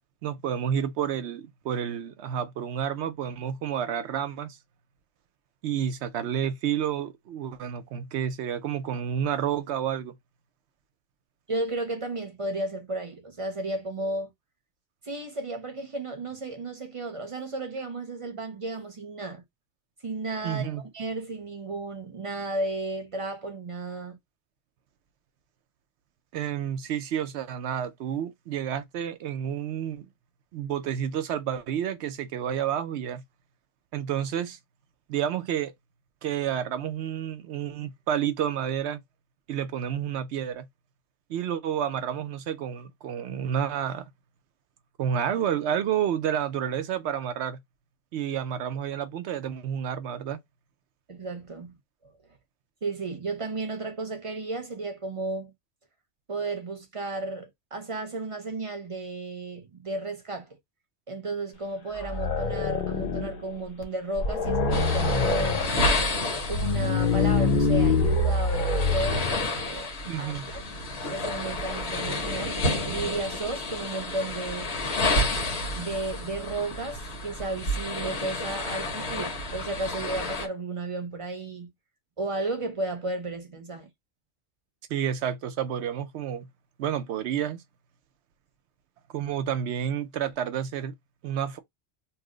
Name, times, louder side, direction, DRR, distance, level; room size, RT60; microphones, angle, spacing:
voice 1, 0.2-4.6 5.6-10.1 20.4-20.8 26.3-30.1 30.5-33.2 33.9-34.6 35.1-35.7 36.2-39.0 39.5-40.6 41.3-44.1 45.0-47.6 48.1-50.4 70.0-70.4 84.9-86.5 86.8-87.6 89.1-90.9 91.2-91.6, right 9 dB, 90° right, 0.9 m, -30 dB
voice 2, 11.5-14.3 15.0-19.4 20.0-24.2 51.1-51.7 52.8-55.5 56.3-60.6 61.1-65.7 66.5-69.9 70.2-70.6 71.1-74.7 75.7-81.7 82.2-83.9, right 2 dB, 35° right, 0.6 m, -33 dB
sound 1, 62.0-63.5 63.8-63.9 64.2-65.7 66.3-69.5, left 3 dB, 50° left, 0.7 m, -25 dB
sound 2, 64.7-80.5, left 2 dB, 80° left, 1.2 m, -30 dB
2.8 x 2.0 x 3.8 m
omnidirectional pair, 1.1 m